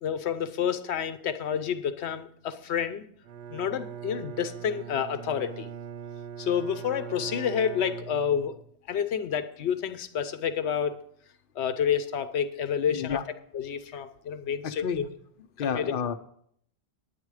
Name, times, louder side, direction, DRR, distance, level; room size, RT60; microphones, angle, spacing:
voice 1, 0.0-3.0 3.5-5.7 6.4-8.6 8.9-10.9 11.6-13.2 13.5-15.1 15.7-15.9, left 8 dB, 85° left, 12 dB, 1.0 m, -29 dB
Bowed string instrument, 3.2-8.7, right 8 dB, 85° right, 0.9 m, -41 dB
voice 2, 12.9-13.2 14.6-15.1 15.6-16.1, left 7 dB, 60° left, 7 dB, 0.9 m, -30 dB
9.8 x 9.3 x 4.8 m, 0.64 s
omnidirectional pair, 1.1 m